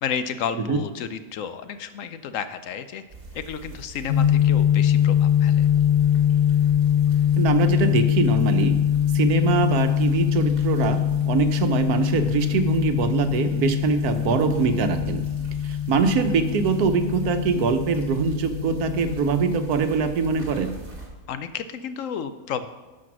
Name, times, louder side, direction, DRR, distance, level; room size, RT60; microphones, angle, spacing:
voice 1, 0.0-3.0 3.3-5.7 21.3-22.7, left 7 dB, 70° left, 11 dB, 0.9 m, -32 dB
sound 1, 3.1-21.1, right 3 dB, 40° right, 2.3 m, -41 dB
sound 2, 4.1-19.7, left 10 dB, 90° left, 1.4 m, -22 dB
voice 2, 7.4-8.8 9.1-11.0 11.3-15.2 15.6-20.7, right 5 dB, 85° right, 8 dB, 1.3 m, -23 dB
12.0 x 5.0 x 6.0 m, 1.2 s
omnidirectional pair, 1.6 m